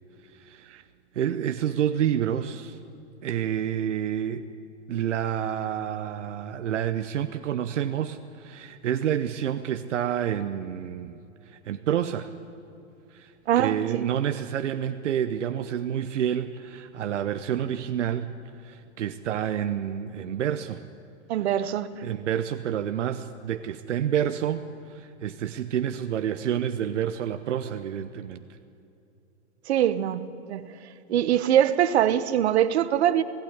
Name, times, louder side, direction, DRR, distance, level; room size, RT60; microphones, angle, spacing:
voice 1, 0.2-0.8 1.1-2.8 3.2-4.5 4.9-11.2 11.5-12.3 13.1-20.8 22.0-28.6, right 9 dB, 85° right, 9 dB, 1.0 m, -29 dB
voice 2, 13.5-14.1 21.3-21.9 29.7-30.2 30.5-30.6 31.1-33.2, right 10 dB, 65° right, 13 dB, 1.3 m, -22 dB
17.0 x 15.5 x 9.8 m, 2.7 s
hypercardioid pair, 150°, 35 cm